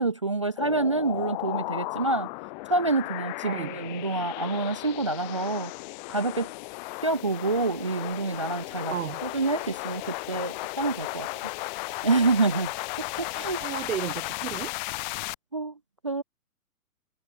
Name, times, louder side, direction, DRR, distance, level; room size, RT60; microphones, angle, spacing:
voice 1, 0.0-2.3 2.7-5.7 6.1-6.5 7.0-8.9 9.2-11.3 12.0-12.7 13.0-13.6 15.5-15.7 16.0-16.2, right 3 dB, 25° right, 0.3 m, -27 dB
sound 1, 0.6-15.3, left 25 dB, 30° left, 2.0 m, -35 dB
voice 2, 3.4-3.8 8.9-9.2 13.6-14.7, right 10 dB, 60° right, 2.9 m, -33 dB
hypercardioid pair, 150°, 44 cm